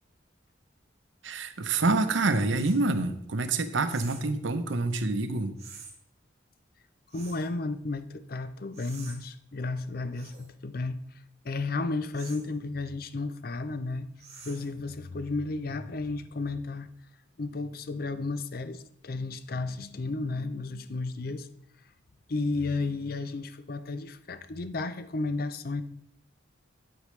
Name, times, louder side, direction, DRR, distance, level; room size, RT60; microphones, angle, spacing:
voice 1, 1.2-5.6, right 3 dB, 70° right, 0.7 m, -27 dB
sound 1, 2.6-2.8 3.9-4.3 5.6-5.9 7.1-7.5 8.7-9.2 10.1-10.5 12.1-12.5 14.2-14.7, right 5 dB, 35° right, 1.5 m, -48 dB
voice 2, 7.1-11.0 11.4-14.1 14.4-16.9 17.4-21.5 22.3-25.8, left 3 dB, 50° left, 0.5 m, -33 dB
8.8 x 8.2 x 3.2 m
head